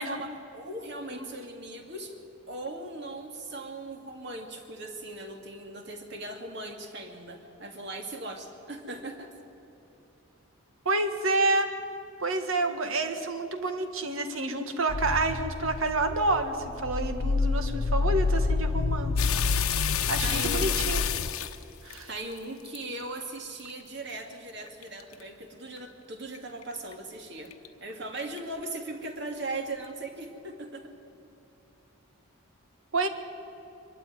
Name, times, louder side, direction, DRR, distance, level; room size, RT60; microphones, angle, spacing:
voice 1, 0.0-2.2 2.5-9.3 20.2-20.8 22.1-27.5 27.8-30.9, right 2 dB, 50° right, 4 dB, 2.3 m, -39 dB
voice 2, 10.8-11.7 12.2-19.3 20.1-21.0 21.8-22.1 32.9-33.1, right 2 dB, 70° right, 7 dB, 1.7 m, -28 dB
sound 1, 14.9-21.3, left 3 dB, 60° left, 0.6 m, -28 dB
sound 2, 19.2-22.8 23.4-23.7 24.1-24.2 24.7-25.2 25.8-25.9 26.3-26.4 26.6-26.9 27.5-27.7 28.4-28.5, left 11 dB, 85° left, 1.0 m, -30 dB
23.5 x 12.5 x 9.7 m, 2.9 s
head